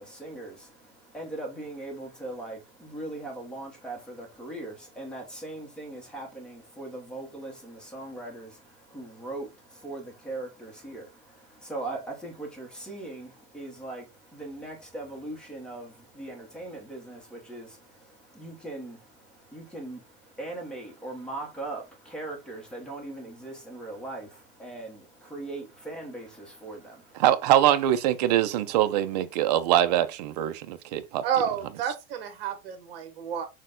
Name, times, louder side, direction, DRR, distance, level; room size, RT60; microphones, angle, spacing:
voice 1, 0.0-27.2, right 2 dB, ahead, 0.8 m, -40 dB
voice 2, 27.2-31.2, right 12 dB, 40° right, 0.4 m, -23 dB
voice 3, 31.2-33.4, right 8 dB, 55° right, 1.2 m, -30 dB
6.3 x 2.2 x 3.7 m
supercardioid pair, 175°, 34 cm